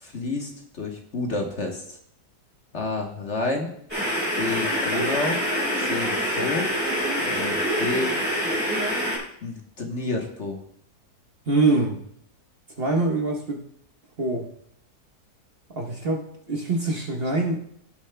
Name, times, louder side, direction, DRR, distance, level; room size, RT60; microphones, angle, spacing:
voice 1, 0.0-2.0 2.7-3.7 4.4-5.4 5.8-6.7 7.2-8.2 9.4-10.6, left 3 dB, 45° left, 2 dB, 1.3 m, -29 dB
sound 1, 3.9-9.2, equal, 5° right, 3.1 m, -25 dB
voice 2, 11.5-12.0 12.8-13.6 14.2-14.5 15.7-17.6, right 2 dB, 40° right, 0 dB, 1.1 m, -24 dB
16.5 x 7.1 x 2.2 m, 0.68 s
omnidirectional pair, 1.8 m